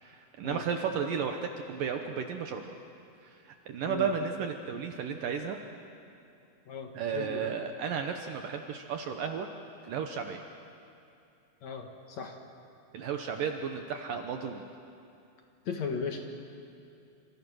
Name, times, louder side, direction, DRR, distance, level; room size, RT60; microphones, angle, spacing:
voice 1, 0.0-2.6 3.2-5.6 6.9-9.5 9.8-10.4 12.9-14.7, right 6 dB, 75° right, 5 dB, 2.1 m, -33 dB
voice 2, 6.7-7.5 11.6-12.4 15.7-16.2, left 5 dB, 55° left, 3 dB, 2.0 m, -36 dB
29.0 x 26.5 x 6.3 m, 2.6 s
omnidirectional pair, 5.2 m